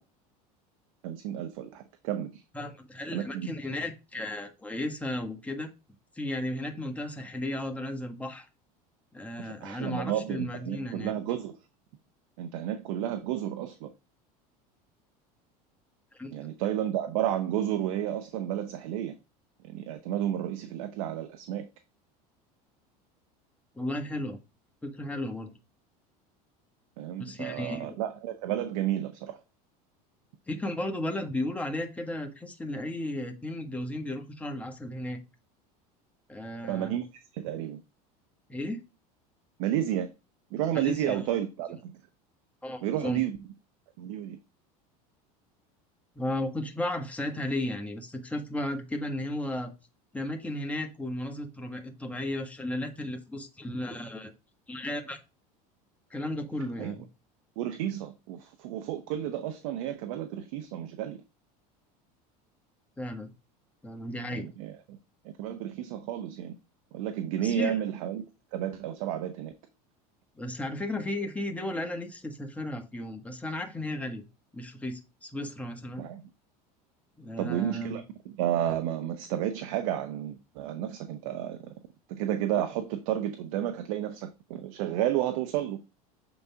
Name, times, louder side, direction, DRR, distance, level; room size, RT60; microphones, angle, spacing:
voice 1, 1.0-2.4 3.1-3.5 9.4-11.6 12.4-13.9 16.3-19.1 19.6-21.7 27.0-29.4 36.6-37.1 37.3-37.8 39.6-40.1 40.5-42.0 42.8-43.4 44.0-44.4 56.8-57.0 57.6-61.2 64.3-65.0 65.2-66.5 66.9-68.2 68.5-69.5 76.0-76.2 77.4-81.7 82.1-85.8, right 11 dB, 75° right, 0.8 m, -31 dB
voice 2, 2.5-5.7 6.1-8.5 9.1-11.1 16.1-16.3 23.7-24.4 24.8-25.5 27.2-28.0 30.5-35.2 36.3-37.0 38.5-38.8 40.7-41.2 42.6-43.2 46.1-49.7 50.1-54.3 54.7-55.2 56.1-57.0 63.0-63.3 63.8-64.5 67.4-67.8 70.4-74.2 74.5-76.1 77.2-78.0, left 1 dB, 5° left, 1.5 m, -34 dB
7.0 x 4.0 x 3.4 m
supercardioid pair, 100°, 19 cm